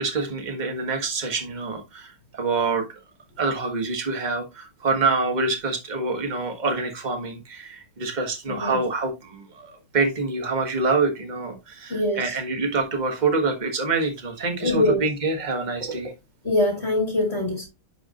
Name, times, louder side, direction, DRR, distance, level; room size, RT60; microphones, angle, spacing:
voice 1, 0.0-2.8 3.4-16.1, right 3 dB, 25° right, 1.3 m, -26 dB
voice 2, 8.5-8.8 11.9-12.3 14.6-15.0 16.4-17.7, left 1 dB, 30° left, 2.3 m, -23 dB
11.0 x 4.7 x 2.5 m
omnidirectional pair, 2.4 m